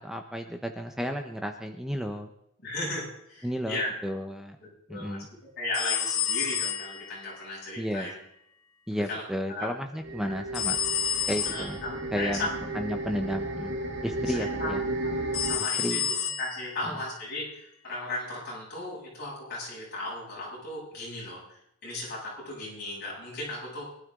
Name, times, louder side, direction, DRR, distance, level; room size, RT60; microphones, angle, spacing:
voice 1, 0.0-2.3 3.4-4.6 4.9-5.3 7.8-8.1 8.9-10.8 11.3-11.8 12.1-12.5 12.7-13.7 14.0-14.8 15.8-16.0, equal, ahead, 4 dB, 0.8 m, -32 dB
voice 2, 2.6-3.9 4.6-5.2 5.6-8.1 9.1-9.7 10.2-10.3 11.5-12.9 14.3-16.0 16.4-23.9, left 2 dB, 45° left, -6 dB, 7.3 m, -36 dB
sound 1, 5.7-7.3 10.5-11.8 15.3-16.7, left 8 dB, 75° left, 1.7 m, -29 dB
sound 2, 10.0-15.6, right 2 dB, 55° right, 1.8 m, -34 dB
23.5 x 12.5 x 3.7 m, 0.76 s
head